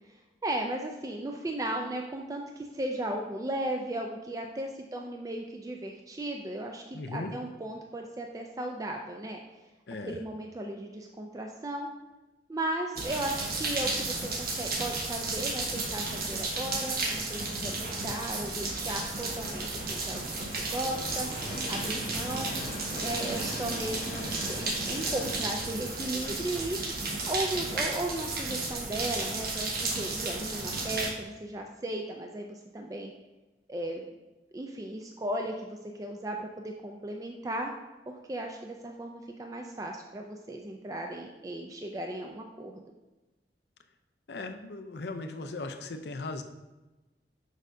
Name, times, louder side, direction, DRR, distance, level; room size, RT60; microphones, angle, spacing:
voice 1, 0.4-9.4 10.0-11.9 12.5-20.2 20.7-21.3 21.7-22.5 23.0-26.8 27.3-33.1 33.7-34.0 34.5-37.7 38.1-42.8, right 1 dB, 20° right, 2 dB, 0.4 m, -36 dB
voice 2, 6.9-7.3 9.9-10.2 17.6-18.1 44.3-46.4, left 3 dB, 70° left, 7 dB, 0.6 m, -38 dB
sound 1, 12.9-31.1, right 3 dB, 55° right, 1.1 m, -33 dB
Train, 16.7-29.7, equal, 50° left, 1.1 m, -43 dB
6.4 x 6.2 x 2.6 m, 1.1 s
head